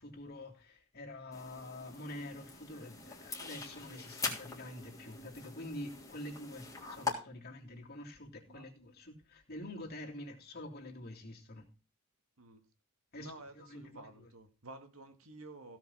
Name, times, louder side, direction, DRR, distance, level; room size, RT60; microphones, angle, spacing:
voice 1, 0.0-11.7 13.1-14.3, left 1 dB, 45° left, 3.2 m, -47 dB
sound 1, 1.3-7.1, left 4 dB, 15° left, 3.4 m, -42 dB
voice 2, 13.2-15.8, right 2 dB, 70° right, 2.0 m, -52 dB
16.5 x 5.9 x 5.7 m
head